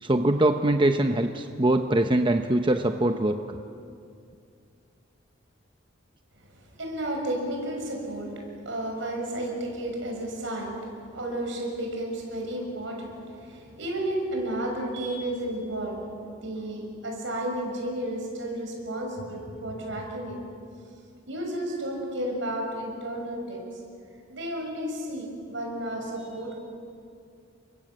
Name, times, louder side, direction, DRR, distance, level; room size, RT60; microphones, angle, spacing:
voice 1, 0.0-3.6, right 1 dB, 25° right, 6 dB, 0.8 m, -23 dB
voice 2, 6.4-20.4 21.3-23.8 24.3-26.6, right 1 dB, 70° right, 1 dB, 6.5 m, -32 dB
30.0 x 23.5 x 7.9 m, 2.4 s
head